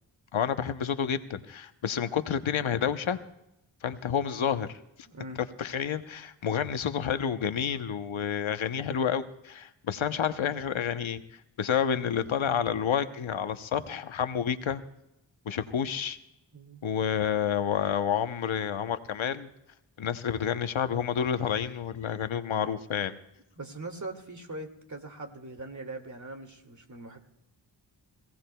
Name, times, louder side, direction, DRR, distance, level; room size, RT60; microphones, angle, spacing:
voice 1, 0.3-3.2 3.8-4.8 5.6-11.2 11.6-14.8 15.5-16.2 16.8-19.5 20.0-23.2, left 8 dB, 85° left, 10 dB, 0.9 m, -29 dB
voice 2, 5.1-5.4 16.5-16.8 23.6-27.2, right 2 dB, 40° right, 5 dB, 2.3 m, -41 dB
26.0 x 17.0 x 2.3 m, 0.87 s
cardioid pair, 55°, 46 cm